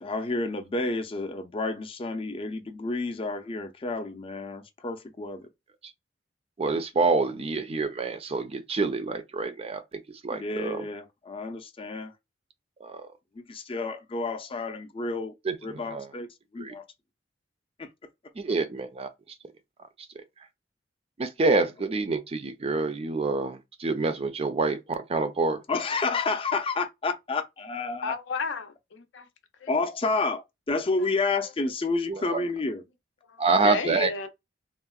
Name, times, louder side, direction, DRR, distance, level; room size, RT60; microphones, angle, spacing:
voice 1, 0.0-5.5 10.3-12.1 13.3-15.3 15.6-16.8 17.8-17.9 25.7-28.1 29.7-32.8, left 3 dB, 30° left, 0.5 m, -30 dB
voice 2, 6.6-10.9 12.8-13.1 15.4-16.1 16.6-16.8 18.3-19.1 21.2-25.6 32.1-32.4 33.4-34.1, right 3 dB, 35° right, 0.4 m, -27 dB
voice 3, 28.0-29.3 29.6-29.7 31.0-31.1 32.3-32.4 33.6-34.3, left 4 dB, 80° left, 0.5 m, -32 dB
3.6 x 2.0 x 2.3 m
head